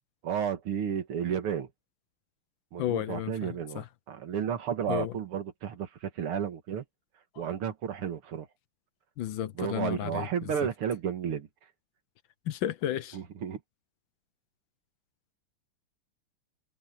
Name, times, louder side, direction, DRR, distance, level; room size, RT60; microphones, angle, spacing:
voice 1, 0.2-1.7 2.7-6.8 7.4-8.5 9.5-11.5 13.1-13.6, right 8 dB, 85° right, 2.5 m, -32 dB
voice 2, 2.8-3.8 4.9-5.1 9.2-10.3 12.5-13.2, left 11 dB, 70° left, 1.4 m, -32 dB
omnidirectional pair, 2.4 m